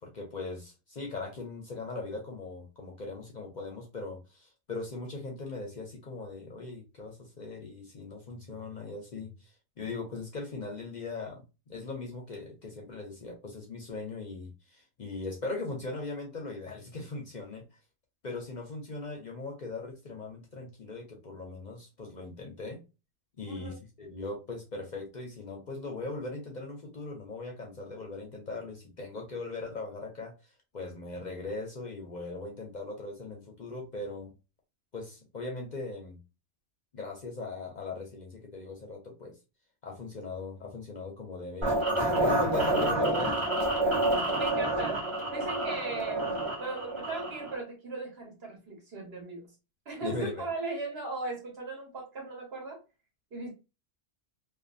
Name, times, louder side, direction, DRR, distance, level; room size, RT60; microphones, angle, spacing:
voice 1, 0.0-17.7 18.2-22.8 23.4-30.3 30.7-34.3 34.9-36.2 36.9-39.4 39.8-43.4 50.0-50.5, left 3 dB, 50° left, 0.6 m, -39 dB
voice 2, 23.5-23.8 44.3-45.0 45.3-49.5 49.8-52.8 53.3-53.5, right 3 dB, 60° right, 1.4 m, -38 dB
sound 1, 41.6-47.6, right 1 dB, 30° right, 0.9 m, -28 dB
2.5 x 2.5 x 2.5 m
omnidirectional pair, 1.2 m